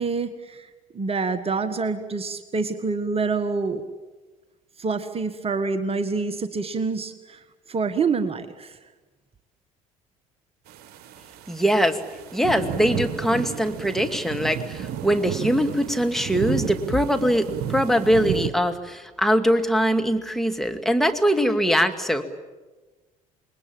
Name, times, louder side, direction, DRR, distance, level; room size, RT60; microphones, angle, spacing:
voice 1, 0.0-3.8 4.8-7.4 7.7-8.8, right 4 dB, 30° right, 10 dB, 1.7 m, -27 dB
sound 1, 10.7-18.5, right 9 dB, 60° right, 1.4 m, -32 dB
voice 2, 11.5-12.0 12.3-22.2, equal, ahead, 6 dB, 2.3 m, -22 dB
28.0 x 21.5 x 8.8 m, 1.3 s
figure-of-eight pair, 55°, 19 cm